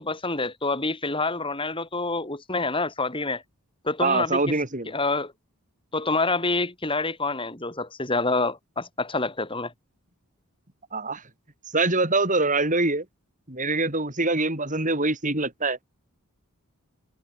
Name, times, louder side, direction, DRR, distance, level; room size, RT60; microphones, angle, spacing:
voice 1, 0.0-3.4 3.8-4.4 4.9-5.3 5.9-9.7, left 3 dB, 25° left, 3.9 m, -27 dB
voice 2, 4.0-4.9 10.9-11.2 11.7-13.0 13.5-15.8, right 3 dB, 35° right, 5.8 m, -24 dB
head